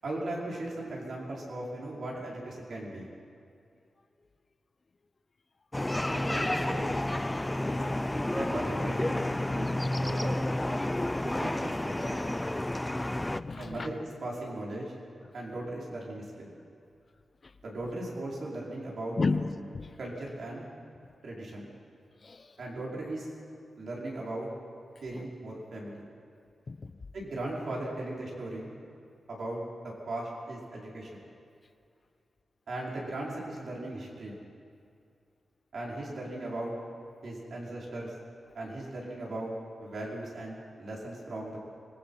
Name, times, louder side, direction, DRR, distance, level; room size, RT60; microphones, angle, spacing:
voice 1, 0.0-3.1 6.1-6.9 8.4-9.7 10.0-10.4 11.4-12.3 13.6-14.0 14.2-14.9 15.3-16.5 17.6-19.4 20.0-20.7 21.2-21.7 22.6-23.3 23.8-24.5 25.0-26.0 27.1-28.8 29.3-31.2 32.7-34.4 35.7-36.7 37.2-38.1 38.5-39.5 39.8-41.6, right 1 dB, 60° right, -4 dB, 5.2 m, -38 dB
sound 1, 5.7-13.4, left 1 dB, 10° left, 0.4 m, -30 dB
voice 2, 7.3-8.1 13.3-13.9 17.4-17.5 19.2-20.0 22.2-22.6 25.1-25.2 26.7-27.0, left 4 dB, 35° left, 10 dB, 0.8 m, -34 dB
25.5 x 21.5 x 5.8 m, 2.5 s
wide cardioid pair, 165°, 0 cm